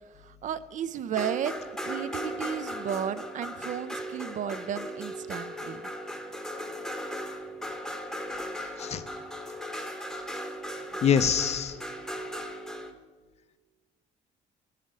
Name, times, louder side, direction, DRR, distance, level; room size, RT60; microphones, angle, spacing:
voice 1, 0.3-1.5 1.8-5.8, right 9 dB, 50° right, 13 dB, 0.4 m, -33 dB
sound 1, 1.1-12.9, equal, 5° left, 0.8 m, -37 dB
voice 2, 11.0-11.8, left 7 dB, 40° left, 12 dB, 0.5 m, -24 dB
9.3 x 5.6 x 5.0 m, 1.4 s
cardioid pair, 110°, 17 cm